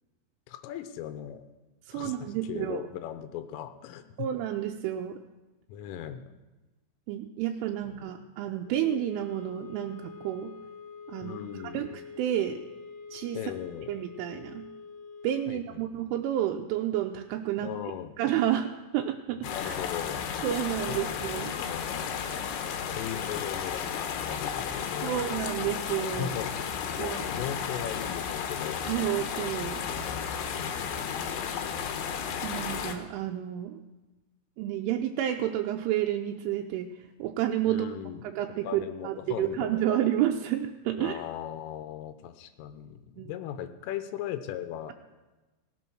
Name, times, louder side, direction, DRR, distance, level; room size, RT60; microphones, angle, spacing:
voice 1, 0.5-1.4 1.9-4.3 5.7-6.3 7.8-8.1 11.2-11.9 13.3-13.9 15.5-16.0 17.6-18.1 19.4-20.3 20.9-22.2 22.8-25.4 26.1-26.5 26.9-28.8 29.9-30.3 37.7-38.2 38.6-40.0 41.0-44.9, left 10 dB, 90° left, 9 dB, 3.3 m, -38 dB
voice 2, 1.9-2.8 4.2-5.2 7.1-10.5 11.1-11.4 11.7-11.9 12.2-12.6 13.1-13.4 13.9-14.7 15.2-17.7 18.2-19.7 20.4-21.5 25.0-26.3 27.0-27.2 28.9-29.8 32.4-33.8 34.6-36.9 37.2-37.9 38.3-41.2 43.2-43.3, right 11 dB, 85° right, 3 dB, 3.0 m, -30 dB
sound 1, 8.6-15.6, left 5 dB, 20° left, 2.0 m, -46 dB
sound 2, 19.4-33.0, left 7 dB, 70° left, 2.6 m, -33 dB
17.0 x 7.6 x 6.2 m, 1.2 s
omnidirectional pair, 5.8 m